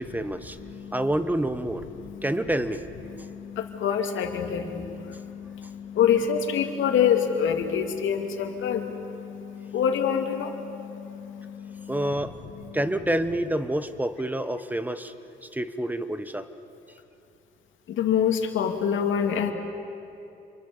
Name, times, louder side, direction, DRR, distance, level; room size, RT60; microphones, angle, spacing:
voice 1, 0.0-0.6 0.9-1.8 2.2-2.8 11.9-12.4 12.7-15.1 15.5-16.5, right 1 dB, 10° right, 11 dB, 1.2 m, -27 dB
voice 2, 0.6-1.0 2.0-2.2 3.1-12.2 17.9-19.5, left 8 dB, 80° left, 4 dB, 2.4 m, -27 dB
27.5 x 23.5 x 7.0 m, 2.8 s
cardioid pair, 90°, 20 cm